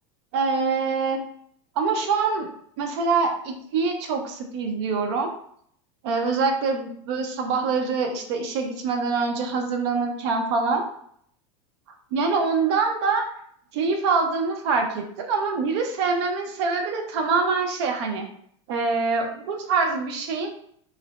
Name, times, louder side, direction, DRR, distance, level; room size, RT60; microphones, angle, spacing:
voice 1, 0.3-1.2 1.8-2.5 2.8-5.3 6.0-10.8 12.1-13.2 13.7-18.3 18.7-20.5, right 4 dB, 70° right, 4 dB, 0.6 m, -24 dB
2.6 x 2.0 x 3.0 m, 0.66 s
supercardioid pair, 145°, 15 cm